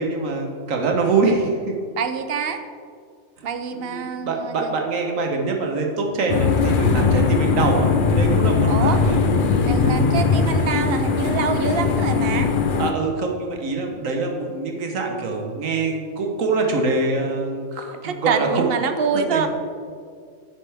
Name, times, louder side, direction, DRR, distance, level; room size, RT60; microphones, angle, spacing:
voice 1, 0.0-1.7 3.7-9.3 12.8-18.8 19.3-19.5, right 3 dB, 85° right, 2 dB, 1.5 m, -24 dB
voice 2, 2.0-2.6 3.4-4.7 8.7-9.0 9.6-12.5 18.0-19.5, right 6 dB, 55° right, 8 dB, 0.8 m, -25 dB
sound 1, 6.3-12.9, left 4 dB, 50° left, 0.7 m, -19 dB
9.6 x 9.2 x 3.5 m, 2.2 s
omnidirectional pair, 1.3 m